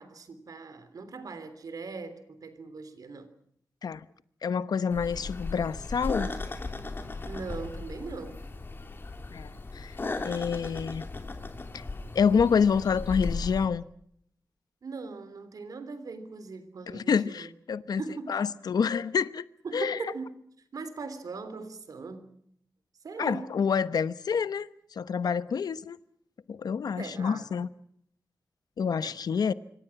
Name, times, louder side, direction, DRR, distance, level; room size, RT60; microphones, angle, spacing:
voice 1, 0.0-3.3 7.2-8.4 14.8-17.5 18.0-18.4 19.6-20.3 20.7-22.4 23.0-23.6 27.0-27.5 28.8-29.2, right 4 dB, 65° right, 3.3 m, -40 dB
voice 2, 4.4-6.3 9.3-9.9 10.2-11.0 12.1-13.8 16.9-18.0 18.3-19.4 19.7-20.0 23.2-24.7 25.0-26.0 26.5-27.7 28.8-29.5, left 6 dB, 85° left, 1.0 m, -27 dB
sound 1, 4.9-13.7, left 3 dB, 35° left, 3.1 m, -36 dB
27.0 x 24.5 x 6.0 m
wide cardioid pair, 155°, 7 cm